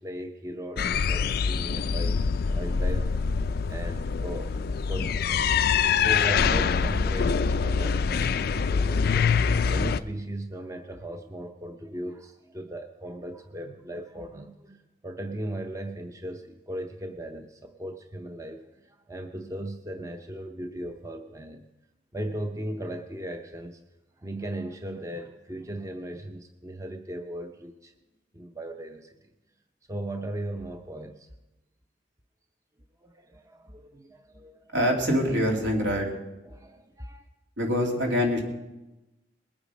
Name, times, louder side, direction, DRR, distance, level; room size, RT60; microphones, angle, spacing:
voice 1, 0.0-2.2 2.5-3.2 3.7-21.6 22.1-23.8 24.2-27.9 28.3-29.2 29.9-31.3 33.0-34.7 36.4-37.2, right 1 dB, 15° right, 6 dB, 0.6 m, -37 dB
sound 1, 0.8-10.0, left 6 dB, 55° left, 0.4 m, -25 dB
voice 2, 34.7-36.1 37.6-38.4, equal, 75° right, 0 dB, 2.7 m, -24 dB
21.0 x 8.7 x 5.1 m, 1.0 s
head